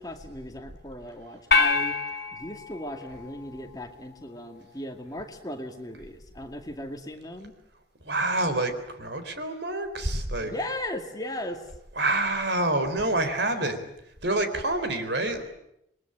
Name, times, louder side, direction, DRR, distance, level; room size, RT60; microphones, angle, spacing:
voice 1, 0.0-2.0 2.3-7.5 10.4-11.7, left 1 dB, 20° left, 4 dB, 2.3 m, -37 dB
sound 1, 1.5-4.0, left 4 dB, 60° left, 2.6 m, -27 dB
voice 2, 8.0-10.5 12.0-13.9 14.2-15.4, right 2 dB, 65° right, 8 dB, 4.0 m, -27 dB
28.0 x 22.0 x 8.9 m, 0.81 s
head